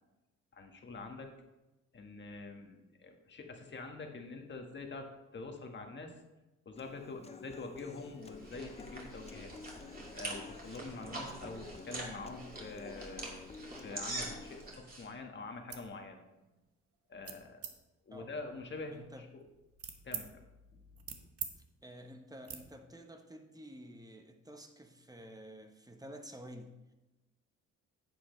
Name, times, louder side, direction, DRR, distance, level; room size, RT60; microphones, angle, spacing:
voice 1, 0.5-1.3 1.9-6.2 6.6-9.5 10.1-13.4 13.8-16.2 17.1-17.7 18.1-19.3 20.0-20.4, left 3 dB, 40° left, 4 dB, 1.4 m, -45 dB
Human voice / Acoustic guitar, 6.8-14.8, left 5 dB, 20° left, 0.7 m, -52 dB
sound 1, 8.0-15.1, right 2 dB, 30° right, 2.5 m, -45 dB
sound 2, 15.5-15.9 16.4-16.7 17.2-17.7 18.4-20.3 20.7-21.5 21.8-22.0 22.4-22.6, right 7 dB, 50° right, 1.1 m, -45 dB
voice 2, 18.9-19.3 21.8-26.9, equal, 10° right, 5 dB, 1.0 m, -51 dB
10.5 x 7.7 x 3.2 m, 1.0 s
cardioid pair, 90°, 30 cm